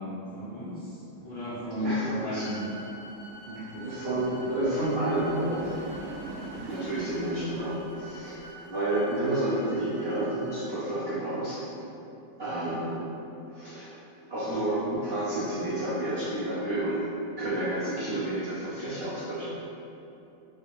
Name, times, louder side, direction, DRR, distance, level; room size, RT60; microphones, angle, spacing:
voice 1, 0.0-2.6 3.4-4.3 12.6-12.7, left 1 dB, 30° left, -12 dB, 0.8 m, -35 dB
sound 1, 1.2-8.6, right 3 dB, 75° right, 1.0 m, -44 dB
voice 2, 1.8-2.5 3.7-5.7 6.4-11.6 12.4-13.0 13.5-14.0 14.3-17.1 17.4-19.5, right 1 dB, 55° right, -11 dB, 0.7 m, -30 dB
sound 2, 2.4-10.7, right 1 dB, 65° left, 0.7 m, -49 dB
3.6 x 2.8 x 4.3 m, 2.9 s
omnidirectional pair, 2.1 m